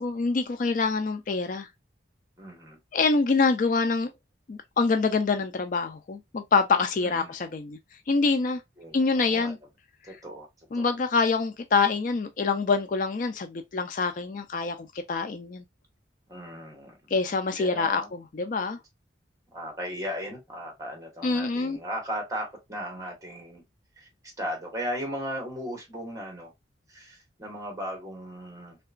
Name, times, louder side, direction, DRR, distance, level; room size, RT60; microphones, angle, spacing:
voice 1, 0.0-1.7 2.9-4.1 4.5-7.8 8.1-8.6 8.9-9.6 10.7-14.8 15.1-15.6 17.1-18.8 21.2-21.8, left 4 dB, 45° left, 0.4 m, -25 dB
voice 2, 2.4-2.8 7.0-7.4 8.8-9.5 10.0-10.5 10.7-10.9 16.3-16.9 17.6-18.1 19.5-23.6 24.0-26.5 26.9-28.8, equal, 20° right, 1.2 m, -36 dB
3.3 x 2.9 x 2.4 m
head